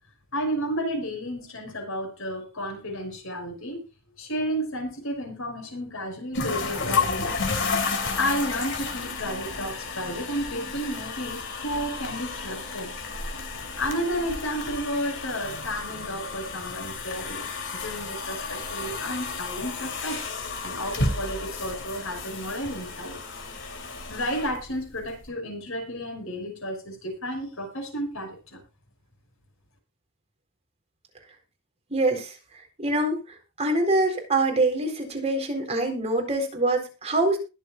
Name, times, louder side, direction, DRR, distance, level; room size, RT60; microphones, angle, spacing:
voice 1, 0.3-3.9 4.2-7.4 8.2-12.9 13.8-20.2 20.6-23.5 24.1-28.6, equal, 75° left, 2 dB, 5.8 m, -32 dB
sound 1, 6.3-25.2, left 4 dB, 60° left, 3.3 m, -32 dB
voice 2, 31.9-32.3 32.8-33.2 33.6-37.4, right 2 dB, 30° right, 3 dB, 4.1 m, -24 dB
21.0 x 7.2 x 2.5 m, 0.30 s
head